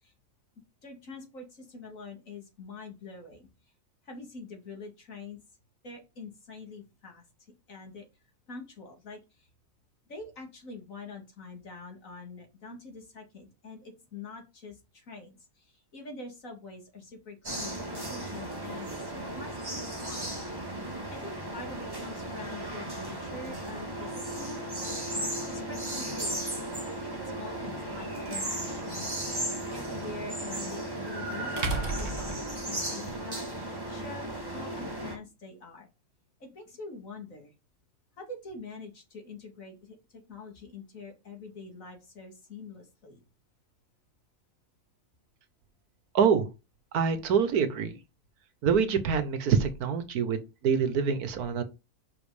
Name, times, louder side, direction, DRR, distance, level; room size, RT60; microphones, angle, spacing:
voice 1, 0.8-3.5 4.0-5.4 5.8-7.2 7.7-8.1 8.5-9.5 10.1-20.3 20.7-25.1 25.4-26.5 27.0-29.1 29.7-35.9 36.4-37.5 38.2-43.2, left 3 dB, 60° left, 2.7 m, -45 dB
sound 1, 17.4-35.1, right 1 dB, 15° right, 1.9 m, -35 dB
sound 2, 27.7-27.8 30.4-30.5 31.6-33.2, right 3 dB, 55° right, 1.8 m, -33 dB
voice 2, 46.1-46.5 46.9-47.9 48.6-51.6, right 6 dB, 80° right, 1.5 m, -25 dB
5.9 x 5.3 x 4.9 m
omnidirectional pair, 1.6 m